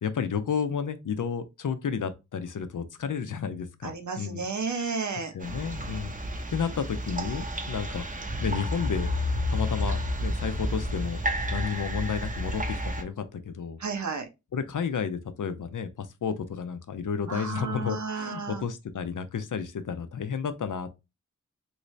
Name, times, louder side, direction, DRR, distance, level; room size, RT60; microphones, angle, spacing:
voice 1, 0.0-4.4 5.3-6.1 6.5-8.0 8.4-9.1 9.5-11.2 11.5-13.8 14.5-20.9, left 6 dB, 80° left, 0.5 m, -32 dB
voice 2, 3.8-5.3 13.8-14.3 17.3-18.6, right 4 dB, 65° right, 0.8 m, -32 dB
sound 1, 5.4-13.0, equal, 25° right, 0.6 m, -31 dB
3.1 x 2.6 x 3.1 m
wide cardioid pair, 50°, 31 cm